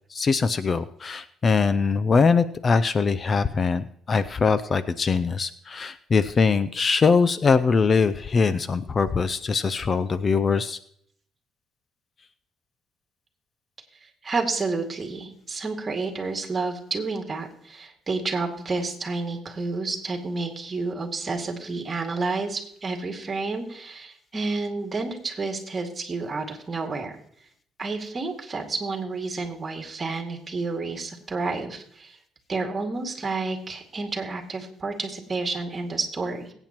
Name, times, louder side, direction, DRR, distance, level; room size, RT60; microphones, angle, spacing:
voice 1, 0.1-10.8, left 5 dB, 30° left, 14 dB, 0.4 m, -22 dB
voice 2, 14.2-27.1 27.8-32.2 32.5-36.5, right 3 dB, 25° right, 2 dB, 2.2 m, -30 dB
22.5 x 8.8 x 3.0 m, 0.67 s
cardioid pair, 125°, 0 cm